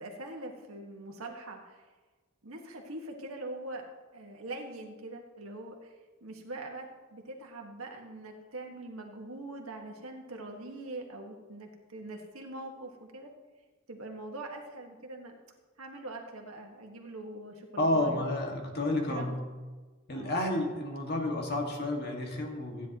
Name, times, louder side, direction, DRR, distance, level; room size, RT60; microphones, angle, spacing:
voice 1, 0.0-1.9 2.4-3.8 4.1-13.3 13.9-15.4 15.8-18.2 18.8-19.4 20.1-20.4, right 2 dB, 85° right, 1 dB, 1.7 m, -43 dB
voice 2, 17.8-19.4 20.1-22.9, left 1 dB, 50° left, 1 dB, 2.0 m, -30 dB
15.5 x 10.0 x 3.1 m, 1.3 s
head